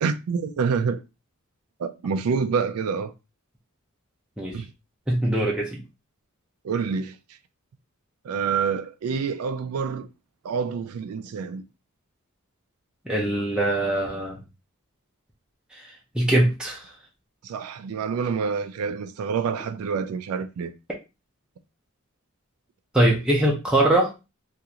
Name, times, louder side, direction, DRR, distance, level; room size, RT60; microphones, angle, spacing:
voice 1, 0.0-1.0 1.8-3.1 4.5-4.7 6.6-7.2 8.2-10.1 10.4-11.6 17.4-20.7, right 5 dB, 80° right, 0.3 m, -27 dB
voice 2, 5.1-5.8 13.1-14.4 16.1-16.8 22.9-24.1, right 1 dB, 5° right, 0.6 m, -22 dB
3.6 x 2.5 x 2.8 m
head